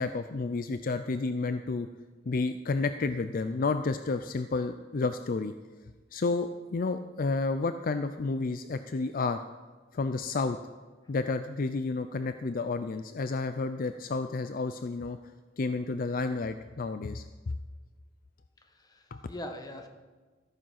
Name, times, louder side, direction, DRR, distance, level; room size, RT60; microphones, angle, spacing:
voice 1, 0.0-1.9 2.3-5.5 6.1-9.4 9.9-10.6 11.1-15.2 15.6-17.6 19.1-19.2, left 3 dB, 50° left, 10 dB, 0.5 m, -31 dB
voice 2, 18.6-19.9, left 1 dB, 20° left, 5 dB, 1.2 m, -42 dB
14.0 x 9.4 x 5.9 m, 1.3 s
head